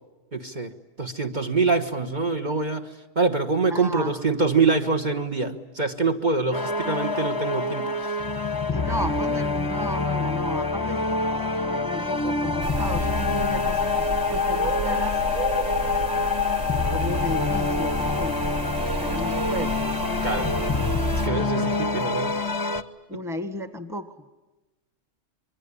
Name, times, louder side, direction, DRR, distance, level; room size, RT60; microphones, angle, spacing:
voice 1, 0.3-0.7 1.0-8.2 20.2-20.5 21.2-22.4 23.1-23.2, right 4 dB, 40° right, 7 dB, 1.4 m, -25 dB
voice 2, 3.6-4.2 8.7-11.1 11.7-15.2 16.9-18.5 19.0-19.8 23.1-24.2, equal, ahead, 10 dB, 1.3 m, -34 dB
sound 1, 6.5-22.8, left 3 dB, 20° left, 1.0 m, -26 dB
sound 2, 12.6-21.3, right 2 dB, 70° right, 1.8 m, -32 dB
26.5 x 23.0 x 9.7 m, 1.1 s
omnidirectional pair, 1.3 m